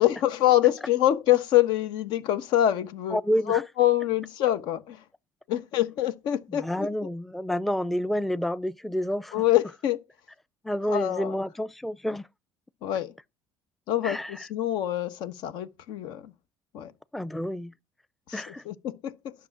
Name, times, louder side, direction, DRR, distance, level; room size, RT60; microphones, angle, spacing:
voice 1, 0.0-3.2 3.5-5.0 5.5-6.9 9.3-10.0 10.9-11.3 12.8-13.1 13.9-14.2 14.5-16.3 16.7-16.9 18.3-19.3, left 13 dB, 75° left, 1.2 m, -25 dB
voice 2, 3.1-3.6 6.5-9.4 10.6-12.3 14.0-14.5 17.1-17.7 18.3-18.6, equal, ahead, 0.5 m, -29 dB
10.5 x 6.3 x 6.0 m
supercardioid pair, 90°, 8 cm